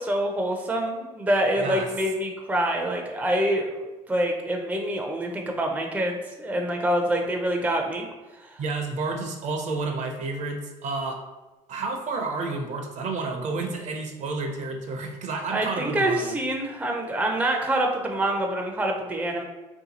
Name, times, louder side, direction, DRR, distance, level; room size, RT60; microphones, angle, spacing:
voice 1, 0.0-3.8 4.1-8.1 8.4-8.6 15.5-19.4, right 1 dB, 10° right, 1 dB, 0.5 m, -26 dB
voice 2, 8.6-11.2 11.7-16.3, right 3 dB, 55° right, 3 dB, 0.6 m, -30 dB
2.7 x 2.3 x 4.0 m, 1.1 s
supercardioid pair, 90°, 14 cm